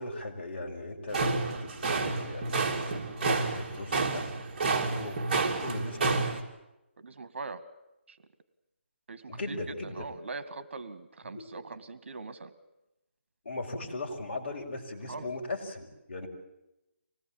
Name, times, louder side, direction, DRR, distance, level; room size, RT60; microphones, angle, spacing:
voice 1, 0.0-4.2 4.9-5.2 5.6-6.4 9.3-10.1 11.3-11.5 13.4-16.3, left 2 dB, 55° left, 0 dB, 5.5 m, -38 dB
sound 1, 1.1-6.4, right 3 dB, 40° right, 3.2 m, -30 dB
voice 2, 7.0-7.6 8.1-8.2 9.1-12.5 15.1-15.3, right 3 dB, 70° right, 12 dB, 2.1 m, -41 dB
25.5 x 19.0 x 8.8 m, 0.93 s
hypercardioid pair, 170°, 7 cm